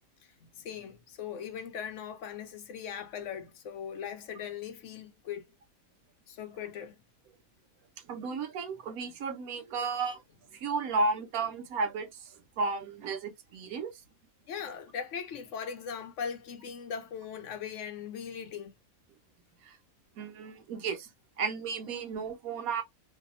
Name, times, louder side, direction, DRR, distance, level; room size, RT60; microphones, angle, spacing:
voice 1, 0.4-5.5 6.3-7.0 14.5-18.7, left 7 dB, 70° left, 0.8 m, -39 dB
voice 2, 8.1-10.2 10.5-12.1 12.6-13.9 19.6-19.7 20.2-21.1 21.4-22.8, right 4 dB, 85° right, 1.2 m, -33 dB
2.7 x 2.3 x 2.4 m
omnidirectional pair, 1.5 m